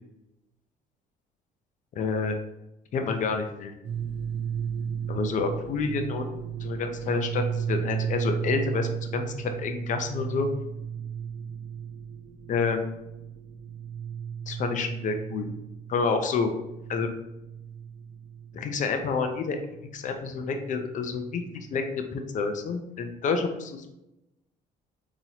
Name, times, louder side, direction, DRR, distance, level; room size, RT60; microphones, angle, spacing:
voice 1, 2.0-2.4 2.9-3.7 5.1-6.3 6.6-10.5 12.5-12.9 14.5-15.5 15.9-16.5 16.9-17.1 18.5-19.7 19.9-21.8 22.1-23.9, left 4 dB, 50° left, 6 dB, 0.6 m, -28 dB
sound 1, 3.8-22.1, right 8 dB, 60° right, 0.5 m, -35 dB
4.0 x 3.0 x 2.9 m, 0.92 s
cardioid pair, 110°, 17 cm